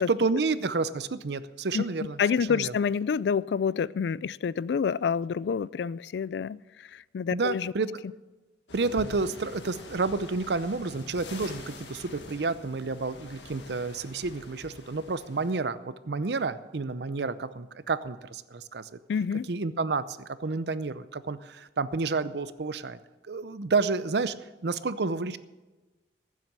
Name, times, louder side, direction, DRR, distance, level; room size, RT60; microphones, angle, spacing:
voice 1, 0.1-2.2 2.5-2.7 7.3-7.9 8.7-18.9 19.5-23.0 23.2-24.3 24.6-25.4, right 3 dB, 65° right, 15 dB, 0.6 m, -30 dB
voice 2, 2.2-7.7 19.1-19.5, left 6 dB, 65° left, 21 dB, 0.3 m, -28 dB
sound 1, 8.7-15.5, left 2 dB, 90° left, 1.8 m, -45 dB
15.0 x 7.5 x 7.5 m, 1.2 s
head